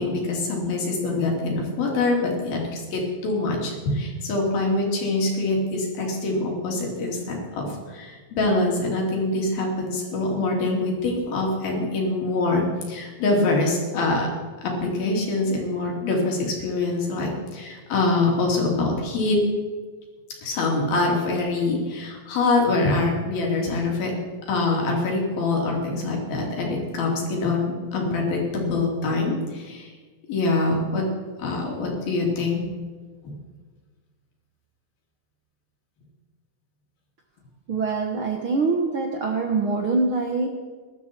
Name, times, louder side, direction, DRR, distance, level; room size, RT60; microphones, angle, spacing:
voice 1, 0.0-14.3 14.6-19.4 20.4-24.1 24.5-29.9 30.3-31.1 31.4-32.6, left 2 dB, 85° left, -1 dB, 5.0 m, -24 dB
voice 2, 37.7-40.5, right 3 dB, 65° right, 2 dB, 1.3 m, -24 dB
20.0 x 12.5 x 4.6 m, 1.4 s
omnidirectional pair, 4.1 m